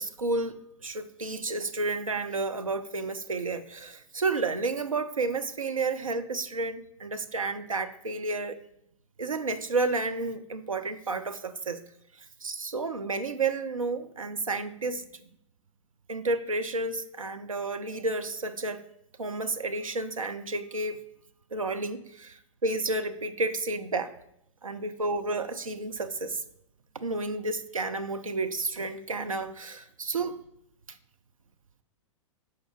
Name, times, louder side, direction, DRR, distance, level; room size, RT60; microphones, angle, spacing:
voice 1, 0.0-8.6 9.2-11.8 12.4-15.0 16.1-18.8 19.2-21.0 21.5-24.1 24.6-26.4 27.0-30.4, right 3 dB, 80° right, 9 dB, 0.5 m, -31 dB
6.5 x 4.8 x 4.5 m, 0.76 s
figure-of-eight pair, 105°, 17 cm